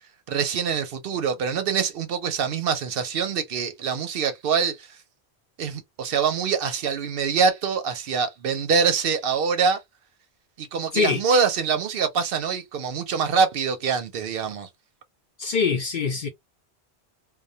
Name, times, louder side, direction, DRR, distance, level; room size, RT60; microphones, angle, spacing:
voice 1, 0.3-5.0 5.6-9.8 10.6-14.7, right 6 dB, 65° right, 0.7 m, -24 dB
voice 2, 15.4-16.3, left 5 dB, 60° left, 0.5 m, -23 dB
2.2 x 2.1 x 2.6 m
omnidirectional pair, 1.1 m